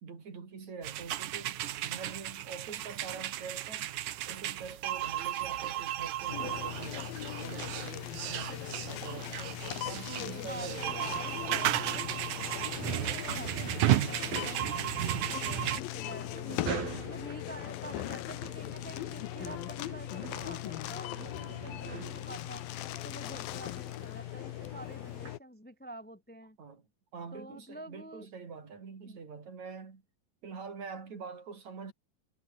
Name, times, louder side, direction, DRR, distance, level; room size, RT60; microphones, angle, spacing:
voice 1, 0.0-3.9 4.3-7.0 7.4-11.2 26.6-26.8 27.1-30.0 30.4-31.9, right 5 dB, 55° right, 5.1 m, -45 dB
sound 1, 0.8-15.8, right 13 dB, 70° right, 2.5 m, -34 dB
sound 2, 6.3-25.4, left 15 dB, 85° left, 2.9 m, -39 dB
voice 2, 10.2-12.1 12.7-16.7 17.0-22.7 23.0-26.6 27.3-28.3 29.0-29.2, right 1 dB, 5° left, 1.5 m, -48 dB
sound 3, 14.2-25.4, right 4 dB, 85° right, 8.2 m, -45 dB
omnidirectional pair, 4.0 m